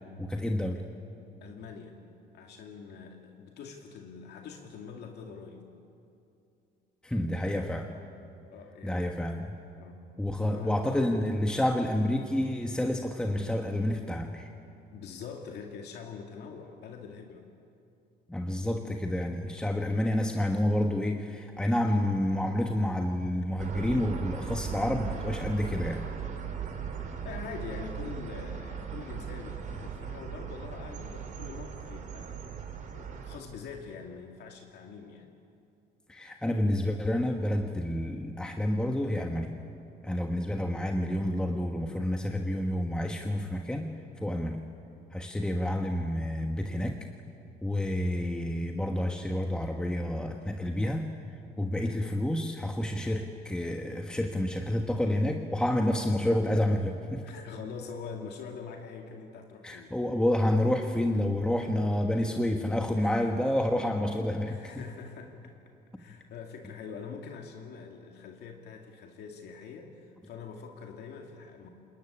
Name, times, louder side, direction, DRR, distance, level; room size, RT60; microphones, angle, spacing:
voice 1, 0.2-0.8 7.0-7.9 8.8-9.5 10.2-14.5 18.3-26.1 36.1-39.5 40.0-43.9 44.2-44.6 45.1-47.1 47.6-51.1 51.6-57.3 59.6-64.8, left 1 dB, 5° left, 3 dB, 1.3 m, -29 dB
voice 2, 1.4-2.0 2.3-5.6 8.5-9.4 9.8-10.0 10.4-10.9 14.9-17.5 27.2-32.6 32.9-35.3 47.7-48.0 51.8-52.1 57.2-59.9 63.0-63.2 64.5-65.5 66.0-71.7, left 6 dB, 65° left, 2 dB, 2.4 m, -44 dB
sound 1, 23.6-33.4, right 7 dB, 45° right, 3.8 m, -38 dB
26.5 x 21.5 x 9.9 m, 2.6 s
cardioid pair, 150°, 18 cm